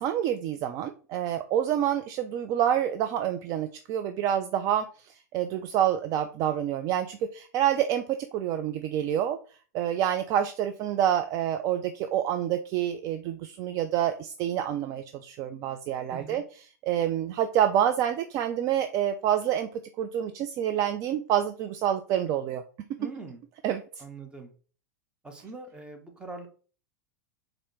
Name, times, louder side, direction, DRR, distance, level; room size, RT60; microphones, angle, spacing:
voice 1, 0.0-4.8 5.3-9.4 9.7-16.4 16.8-19.7 20.0-22.6 23.6-23.8, right 10 dB, 35° right, 7 dB, 0.3 m, -27 dB
voice 2, 16.1-16.4 23.0-23.4 24.0-24.5 25.2-26.5, right 3 dB, 10° right, 3 dB, 1.0 m, -42 dB
4.2 x 2.6 x 4.5 m, 0.39 s
figure-of-eight pair, 85°, 9 cm